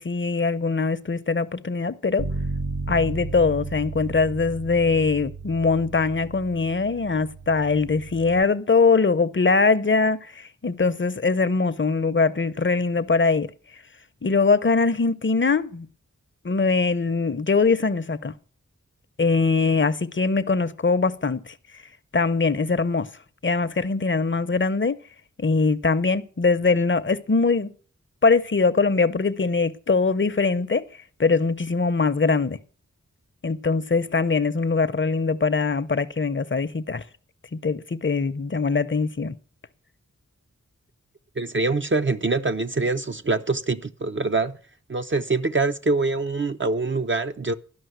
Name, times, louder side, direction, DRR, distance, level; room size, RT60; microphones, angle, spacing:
voice 1, 0.0-2.3 2.9-13.5 14.2-15.9 16.4-18.3 19.2-21.5 22.1-23.1 23.4-25.0 25.4-27.7 28.2-30.8 31.2-32.6 33.4-37.0 37.5-39.4, left 4 dB, 40° left, 0.7 m, -22 dB
Bass guitar, 2.2-8.4, right 3 dB, 60° right, 1.2 m, -34 dB
voice 2, 41.4-44.6 44.9-47.5, right 3 dB, 40° right, 0.6 m, -24 dB
12.5 x 5.5 x 7.9 m
wide cardioid pair, 50°, 31 cm